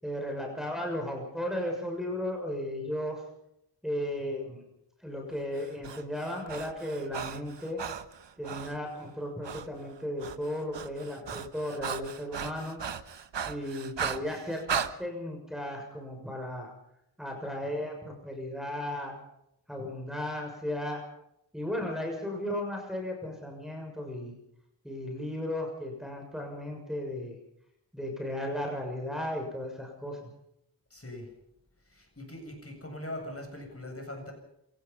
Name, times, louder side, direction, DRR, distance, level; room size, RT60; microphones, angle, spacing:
voice 1, 0.0-3.2 3.8-4.6 5.0-7.8 8.4-12.8 13.4-16.7 17.2-19.1 19.7-21.0 21.5-24.3 24.8-27.4 27.9-30.3, left 1 dB, ahead, 1 dB, 6.7 m, -35 dB
Breathing, 5.6-8.8 9.4-9.7 10.0-14.9, right 7 dB, 90° right, 1.2 m, -37 dB
voice 2, 30.9-31.3 31.8-34.3, left 1 dB, 35° left, 3 dB, 7.8 m, -41 dB
27.0 x 17.5 x 5.6 m, 0.78 s
wide cardioid pair, 70°, 42 cm